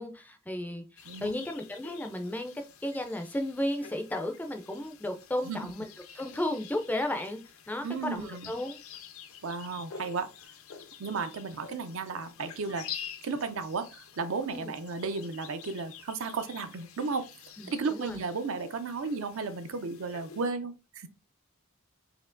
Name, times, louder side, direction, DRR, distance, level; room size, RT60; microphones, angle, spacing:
voice 1, 0.0-2.5 2.8-5.9 6.1-7.4 7.7-8.8 14.5-14.7 17.6-18.2, left 1 dB, 10° left, 0.4 m, -34 dB
sound 1, 1.0-20.5, left 8 dB, 75° left, 0.5 m, -48 dB
voice 2, 1.1-1.4 5.4-5.7 7.8-8.5 9.4-10.3 11.0-12.9 13.2-17.3 17.7-21.1, right 4 dB, 65° right, 0.5 m, -34 dB
4.3 x 2.8 x 2.5 m
head